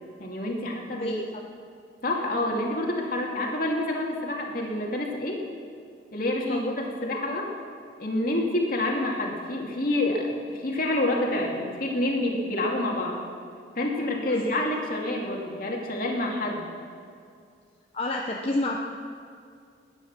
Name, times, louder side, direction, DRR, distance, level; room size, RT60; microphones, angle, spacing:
voice 1, 0.2-1.1 2.0-5.4 6.1-7.5 8.0-13.2 13.8-16.7, left 1 dB, 55° left, 0 dB, 2.4 m, -28 dB
voice 2, 17.9-18.8, left 2 dB, 35° left, 0 dB, 0.9 m, -29 dB
20.5 x 9.7 x 6.0 m, 2.3 s
head